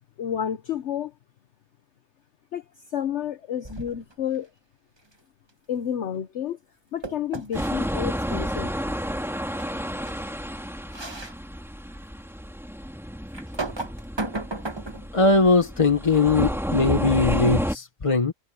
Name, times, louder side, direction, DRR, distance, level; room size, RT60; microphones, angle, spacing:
voice 1, 0.2-1.1 2.5-4.5 5.7-6.6 6.9-8.7, left 9 dB, 60° left, 1.1 m, -30 dB
sound 1, 3.6-4.1 7.0-7.7 9.6-9.7 10.1-10.2 10.9-11.4 11.9-12.0 13.3-15.1, right 2 dB, 20° right, 1.1 m, -34 dB
sound 2, 7.5-17.8, equal, ahead, 2.3 m, -30 dB
voice 2, 15.1-18.3, left 3 dB, 25° left, 0.9 m, -20 dB
omnidirectional pair, 1.4 m